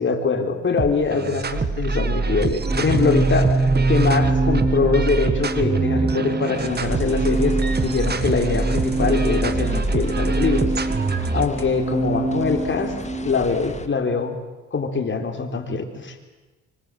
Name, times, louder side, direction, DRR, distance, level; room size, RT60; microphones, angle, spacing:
voice 1, 0.0-3.6 3.9-10.7 11.3-12.9 13.2-14.4 14.7-16.1, left 4 dB, 40° left, 5 dB, 4.2 m, -23 dB
sound 1, 0.8-11.6, right 4 dB, 35° right, 1.8 m, -24 dB
Organ, 2.6-13.4, right 2 dB, 15° right, 0.9 m, -25 dB
sound 2, 6.5-13.9, left 4 dB, 20° left, 2.1 m, -35 dB
25.5 x 24.5 x 7.8 m, 1.2 s
cardioid pair, 90°, 30 cm